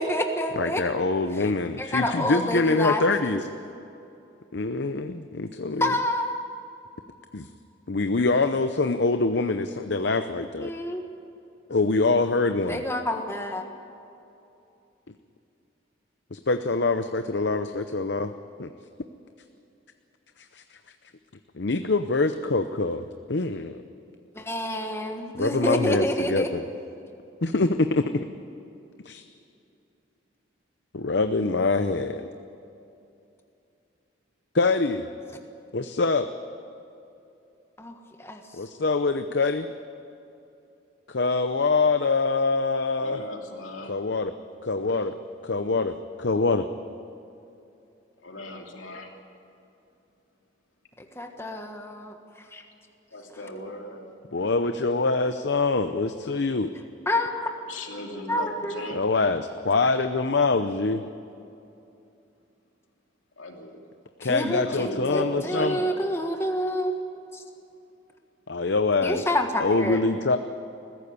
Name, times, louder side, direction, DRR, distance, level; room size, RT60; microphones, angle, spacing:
voice 1, 0.0-0.8 1.8-3.4 5.8-6.4 10.6-11.0 12.7-13.6 24.3-26.5 37.8-38.4 51.0-52.1 52.5-52.6 57.0-57.5 58.3-58.9 64.2-66.9 67.3-67.4 69.0-70.0, left 1 dB, 15° left, 4 dB, 1.4 m, -28 dB
voice 2, 0.6-3.4 4.5-5.9 7.3-7.5 7.9-10.7 11.7-12.8 16.3-18.3 18.6-18.7 20.5-20.6 21.6-23.8 25.3-26.6 27.4-28.2 29.0-29.2 30.9-32.2 34.5-35.0 35.7-36.3 38.5-39.7 41.1-43.2 43.8-44.3 44.6-45.1 45.4-46.7 54.3-56.7 58.9-61.0 64.2-65.8 68.5-69.3 69.6-70.4, left 3 dB, 60° left, 8 dB, 0.7 m, -24 dB
voice 3, 43.0-43.9 48.2-49.2 53.1-54.1 57.7-59.0 63.4-63.8 64.6-65.9, left 2 dB, 90° left, 2 dB, 2.9 m, -36 dB
21.0 x 15.5 x 9.7 m, 2.7 s
head